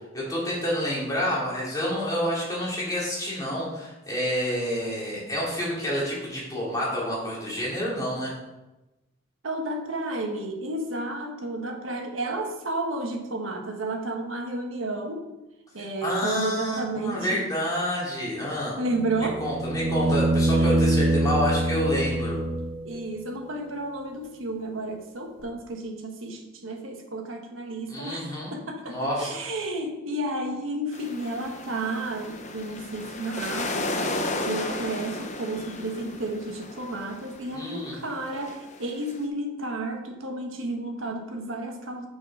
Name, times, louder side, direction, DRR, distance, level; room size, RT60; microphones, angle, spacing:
voice 1, 0.1-8.3 16.0-18.8 19.4-22.4 27.9-28.6 28.9-29.3 37.5-38.0, equal, 20° left, -6 dB, 2.8 m, -28 dB
voice 2, 9.4-15.2 15.7-17.5 18.8-19.4 20.1-20.2 20.6-20.9 22.8-34.2 34.4-42.1, right 2 dB, 80° right, 3 dB, 1.3 m, -32 dB
sound 1, 18.9-23.0 25.4-25.5, right 1 dB, 60° right, 3.0 m, -24 dB
sound 2, 30.9-39.2, left 2 dB, 35° left, 0.8 m, -34 dB
6.3 x 6.2 x 5.3 m, 1.0 s
head